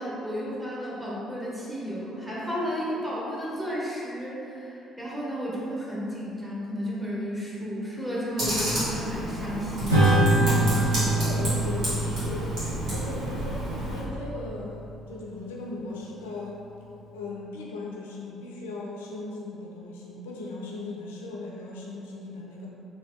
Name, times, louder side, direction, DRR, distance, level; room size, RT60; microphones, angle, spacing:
voice 1, 0.0-10.2, equal, 5° right, -6 dB, 1.0 m, -32 dB
Computer keyboard, 8.4-14.0, equal, 60° right, 1.4 m, -30 dB
Acoustic guitar / Strum, 9.9-14.7, right 1 dB, 90° right, 0.6 m, -25 dB
voice 2, 10.5-16.6 17.1-22.7, left 2 dB, 80° left, -3 dB, 0.3 m, -38 dB
3.1 x 2.9 x 2.6 m, 2.8 s
hypercardioid pair, 50°, 0 cm